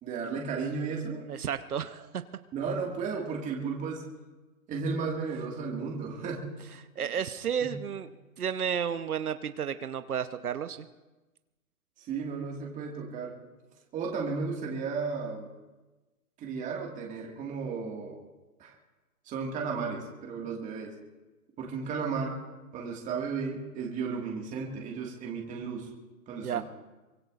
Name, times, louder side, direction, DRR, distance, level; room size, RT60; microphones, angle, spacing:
voice 1, 0.0-1.3 2.5-4.1 4.7-6.5 7.0-7.1 7.6-7.7 12.0-13.4 13.9-15.5 16.4-18.2 18.6-18.7 19.3-21.0 21.6-22.4 22.7-25.9 26.3-26.6, right 5 dB, 15° right, -1 dB, 1.9 m, -34 dB
voice 2, 1.3-2.2 7.0-8.1 8.4-10.9 26.4-26.6, right 8 dB, 85° right, 11 dB, 1.0 m, -32 dB
24.0 x 21.5 x 2.5 m, 1.2 s
hypercardioid pair, 140°, 43 cm